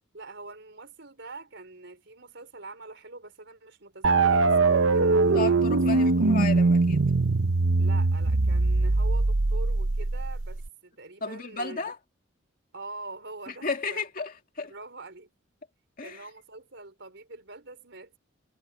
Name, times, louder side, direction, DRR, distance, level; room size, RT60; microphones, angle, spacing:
voice 1, 0.1-5.8 6.1-6.4 7.8-11.9 12.7-14.0 14.6-15.3 16.0-18.2, right 3 dB, 65° right, 5.1 m, -44 dB
sound 1, 4.0-10.7, right 3 dB, 85° right, 0.9 m, -22 dB
voice 2, 5.3-7.1 11.2-12.0 13.6-14.7 16.0-16.2, left 4 dB, 45° left, 2.2 m, -33 dB
head